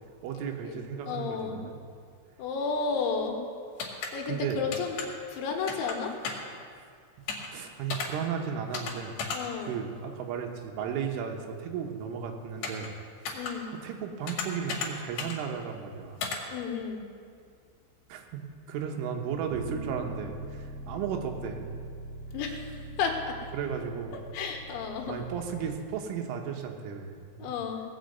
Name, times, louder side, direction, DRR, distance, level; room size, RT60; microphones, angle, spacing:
voice 1, 0.2-1.8 4.3-4.6 7.5-9.2 9.6-12.9 13.3-13.5 13.7-16.2 18.1-21.7 23.5-24.2 25.1-27.5, right 7 dB, 85° right, 3 dB, 3.7 m, -35 dB
voice 2, 1.1-1.6 2.4-3.4 4.1-5.0 5.3-6.2 9.3-9.8 13.3-13.7 16.5-17.0 22.3-23.4 24.3-25.2 27.4-27.8, left 5 dB, 80° left, 2 dB, 3.7 m, -32 dB
sound 1, 3.8-4.1 4.7-5.1 5.7-6.0 6.2-6.5 7.3-7.5 7.9-8.1 8.7-8.9 9.2-9.4 12.6-12.9 13.3-13.5 14.3-14.9 15.2-15.4 16.2-16.4, left 5 dB, 60° left, 3.3 m, -33 dB
Bass guitar, 19.5-25.8, right 2 dB, 60° right, 4.3 m, -42 dB
18.5 x 6.4 x 7.9 m, 2.2 s
omnidirectional pair, 5.5 m